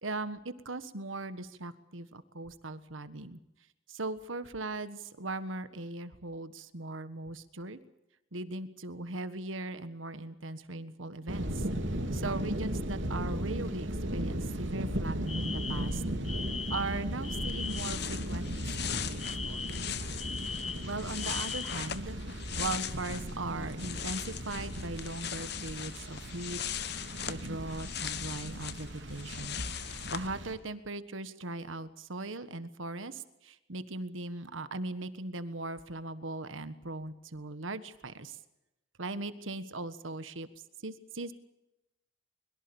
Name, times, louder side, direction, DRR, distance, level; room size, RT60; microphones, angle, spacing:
voice 1, 0.0-3.4 3.9-7.8 8.3-11.7 12.1-16.0 16.7-19.7 20.8-22.2 22.6-26.6 27.3-38.4 39.0-40.5 40.8-41.3, right 2 dB, 90° right, 13 dB, 1.5 m, -39 dB
sound 1, 11.3-30.5, right 1 dB, 70° right, 3.3 m, -37 dB
Alarm, 15.3-18.0 19.2-21.9, left 5 dB, 30° left, 1.3 m, -40 dB
sound 2, 17.2-17.3 17.5-23.3 23.6-30.3, left 10 dB, 55° left, 1.1 m, -40 dB
23.5 x 22.5 x 7.2 m, 0.92 s
head